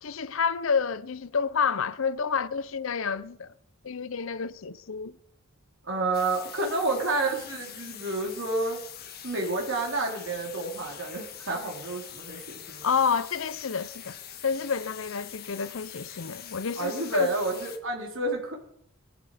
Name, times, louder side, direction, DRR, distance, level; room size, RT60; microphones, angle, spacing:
voice 1, 0.0-3.5 3.8-5.2 12.8-14.2 14.4-17.3, left 6 dB, 70° left, 0.6 m, -29 dB
voice 2, 5.8-8.8 9.2-12.9 16.8-18.5, right 2 dB, 65° right, 3.9 m, -30 dB
sound 1, 6.1-17.8, left 9 dB, 45° left, 1.6 m, -44 dB
20.0 x 12.0 x 5.0 m
head